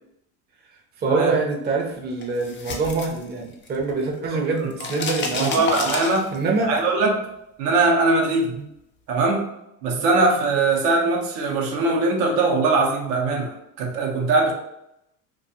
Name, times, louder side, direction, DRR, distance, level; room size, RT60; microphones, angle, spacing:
voice 1, 1.0-5.7 6.3-6.7 8.6-8.7 9.9-10.1, right 3 dB, 25° right, 0 dB, 0.5 m, -25 dB
sound 1, 2.2-3.9 4.2-6.6, left 4 dB, 30° left, 0.4 m, -30 dB
voice 2, 5.4-6.3 6.6-7.3 7.6-8.6 9.1-9.5 9.8-14.5, right 3 dB, 75° right, 0 dB, 0.7 m, -21 dB
2.3 x 2.2 x 2.7 m, 0.82 s
supercardioid pair, 100°, 41 cm